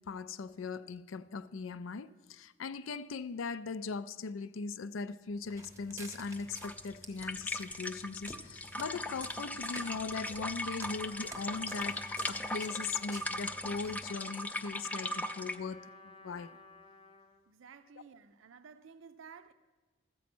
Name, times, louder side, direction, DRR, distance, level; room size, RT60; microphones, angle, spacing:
voice 1, 0.1-16.6, left 4 dB, 85° left, 0.4 m, -39 dB
Walk footsteps, 5.4-14.1, right 2 dB, 15° right, 0.7 m, -51 dB
sound 1, 6.3-15.6, left 1 dB, 10° left, 0.3 m, -39 dB
Trumpet, 10.8-17.4, left 3 dB, 25° left, 0.7 m, -55 dB
voice 2, 17.5-19.5, right 6 dB, 80° right, 0.5 m, -53 dB
13.0 x 8.3 x 6.1 m
head